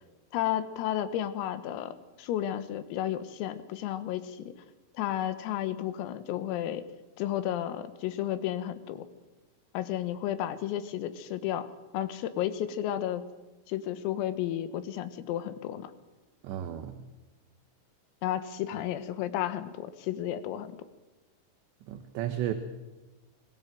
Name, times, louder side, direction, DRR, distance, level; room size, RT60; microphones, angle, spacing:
voice 1, 0.3-4.5 5.0-6.8 7.2-9.1 9.7-13.2 13.7-15.9 18.2-20.7, left 11 dB, 90° left, 11 dB, 4.1 m, -32 dB
voice 2, 16.4-17.0 21.9-22.5, right 11 dB, 70° right, 7 dB, 3.1 m, -33 dB
27.0 x 20.5 x 7.7 m, 1.1 s
omnidirectional pair, 5.9 m